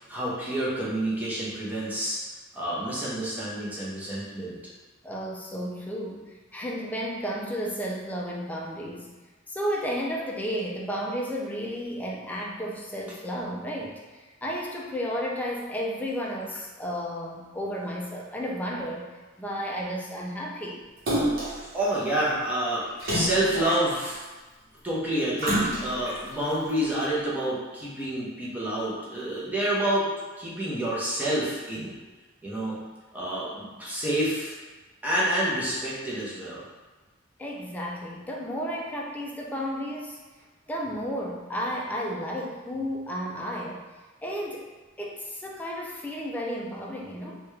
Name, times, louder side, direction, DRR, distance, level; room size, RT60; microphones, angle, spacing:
voice 1, 0.1-2.2 2.5-4.5 21.7-24.2 24.8-30.1 30.4-31.9 32.4-32.8 33.1-34.5 35.0-36.6, right 1 dB, 10° right, -7 dB, 0.7 m, -28 dB
voice 2, 5.0-9.1 9.5-19.1 19.4-20.8 37.4-40.2 40.7-43.8 44.2-44.6 45.0-47.4, equal, 10° left, -2 dB, 0.3 m, -33 dB
Splash splatter, 21.1-21.7 23.0-24.2 25.4-26.2 26.8-26.9, right 1 dB, 45° right, 1.0 m, -28 dB
3.3 x 2.3 x 3.1 m, 1.3 s
head